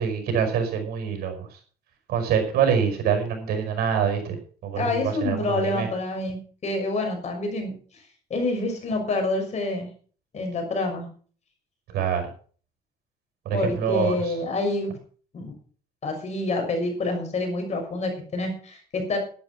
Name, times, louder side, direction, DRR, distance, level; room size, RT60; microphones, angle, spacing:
voice 1, 0.0-1.5 2.1-4.4 4.6-5.9 11.9-12.2 13.5-14.3, right 7 dB, 65° right, 5 dB, 5.4 m, -25 dB
voice 2, 4.8-7.7 8.3-9.9 10.3-11.1 13.5-14.9 15.3-15.5 16.0-19.2, left 2 dB, 40° left, 4 dB, 6.2 m, -27 dB
12.0 x 11.0 x 6.0 m, 0.43 s
cardioid pair, 110°, 17 cm